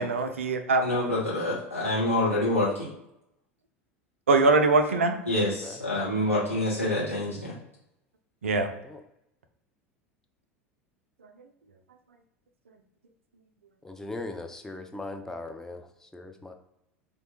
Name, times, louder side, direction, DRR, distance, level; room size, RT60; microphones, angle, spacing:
voice 1, 0.0-0.8 4.3-5.2 8.4-8.7, right 3 dB, 75° right, 7 dB, 0.4 m, -22 dB
voice 2, 0.8-2.9 5.3-7.6, left 1 dB, 90° left, -7 dB, 0.6 m, -27 dB
voice 3, 13.8-16.5, left 2 dB, 5° left, 4 dB, 0.4 m, -39 dB
3.2 x 2.1 x 2.8 m, 0.83 s
figure-of-eight pair, 75°, 7 cm